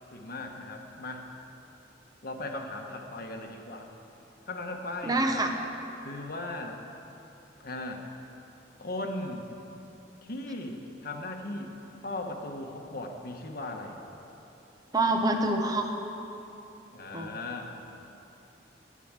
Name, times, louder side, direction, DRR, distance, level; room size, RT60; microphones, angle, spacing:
voice 1, 0.1-1.2 2.2-3.9 4.5-5.4 6.0-6.8 7.6-8.1 8.8-9.5 10.2-11.7 12.0-14.0 16.9-17.9, left 2 dB, 55° left, 3 dB, 1.3 m, -37 dB
voice 2, 5.0-5.5 14.9-15.9 17.1-17.3, right 2 dB, 20° right, 4 dB, 0.9 m, -26 dB
12.5 x 8.7 x 7.5 m, 2.9 s
head